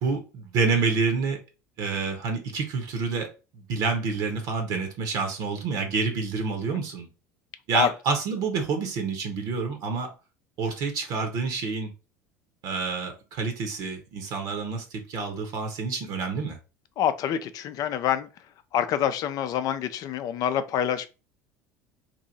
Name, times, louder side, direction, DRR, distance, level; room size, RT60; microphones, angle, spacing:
voice 1, 0.0-1.4 1.8-7.1 7.7-10.1 10.6-11.9 12.6-16.6, right 4 dB, 50° right, 1.1 m, -28 dB
voice 2, 17.0-18.3 18.7-21.1, left 9 dB, 45° left, 0.5 m, -26 dB
3.1 x 2.7 x 4.0 m
figure-of-eight pair, 70°, 9 cm